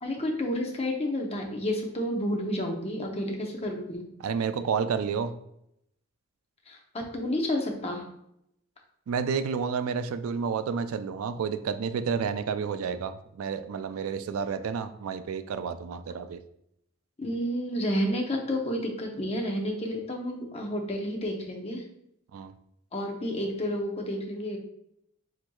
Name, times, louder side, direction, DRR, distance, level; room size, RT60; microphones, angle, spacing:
voice 1, 0.0-4.0 6.7-8.0 17.2-21.8 22.9-24.6, equal, 30° left, 1 dB, 0.7 m, -30 dB
voice 2, 4.2-5.3 9.1-16.4 22.3-22.5, right 6 dB, 80° right, 11 dB, 0.3 m, -30 dB
4.6 x 4.2 x 2.3 m, 0.75 s
head